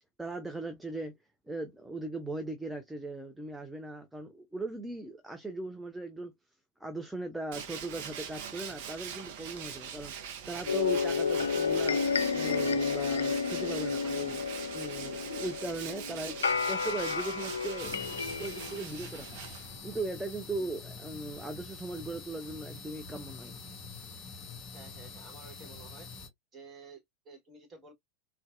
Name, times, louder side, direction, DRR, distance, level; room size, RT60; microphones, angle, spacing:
voice 1, 0.2-1.2 1.5-6.3 6.8-12.0 12.3-14.4 14.7-19.4 19.8-23.5, right 2 dB, 5° right, 0.5 m, -39 dB
Tools, 7.5-20.0, right 7 dB, 50° right, 0.7 m, -42 dB
sound 1, 10.7-18.8, left 5 dB, 70° left, 0.3 m, -31 dB
sound 2, 17.8-26.3, left 4 dB, 30° left, 1.8 m, -46 dB
voice 2, 24.7-26.1 26.5-27.9, right 4 dB, 20° right, 1.4 m, -52 dB
3.9 x 2.2 x 2.4 m
figure-of-eight pair, 90°, 0 cm